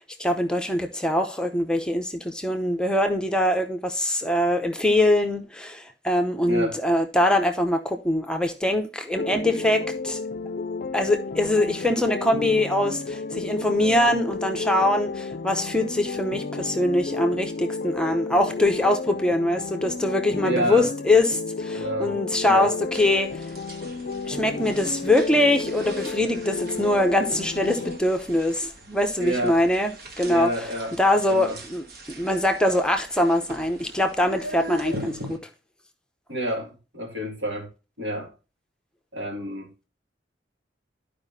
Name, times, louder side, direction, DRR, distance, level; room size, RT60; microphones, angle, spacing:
voice 1, 0.0-10.2 10.9-23.5 24.3-30.5 31.0-31.8 32.2-35.4, left 1 dB, 5° left, 0.8 m, -23 dB
voice 2, 6.5-6.8 20.4-20.9 21.7-22.2 22.4-22.7 29.2-29.6 30.2-30.9 31.3-31.6 36.3-37.7 38.0-38.3 39.1-39.7, equal, 80° right, 2.2 m, -29 dB
sound 1, 9.2-28.0, left 4 dB, 50° left, 0.5 m, -32 dB
sound 2, 22.9-35.4, equal, 55° right, 1.6 m, -42 dB
12.5 x 5.0 x 2.7 m
head